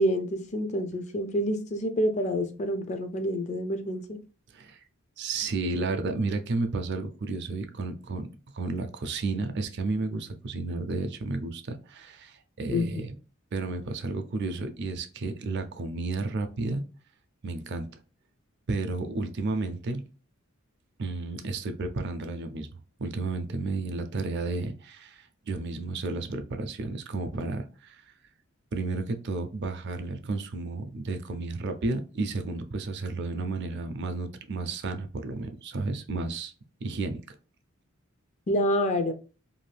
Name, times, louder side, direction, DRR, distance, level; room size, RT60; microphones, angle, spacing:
voice 1, 0.0-4.2 12.7-13.0 38.5-39.1, equal, 35° left, 0.4 m, -27 dB
voice 2, 4.5-4.8 5.2-8.3 8.5-13.1 13.5-16.8 17.4-17.9 18.7-20.0 21.0-22.7 23.0-28.0 28.7-36.5 36.8-37.4, right 3 dB, 55° right, 0.5 m, -32 dB
2.6 x 2.3 x 3.2 m
head